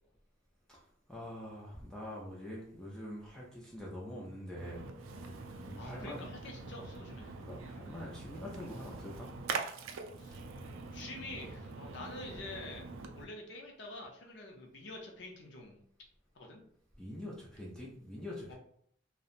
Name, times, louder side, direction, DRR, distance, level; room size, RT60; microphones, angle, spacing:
voice 1, 1.1-4.8 5.6-6.2 7.5-9.3 17.0-18.5, left 1 dB, 5° left, -5 dB, 0.4 m, -44 dB
Splash splatter, 4.6-13.2, right 4 dB, 75° right, 0.3 m, -44 dB
voice 2, 5.8-7.3 10.2-10.4 10.9-12.8 13.1-15.8 16.3-16.6 18.5-18.6, left 2 dB, 60° left, 1 dB, 0.5 m, -47 dB
2.8 x 2.1 x 2.4 m, 0.62 s
head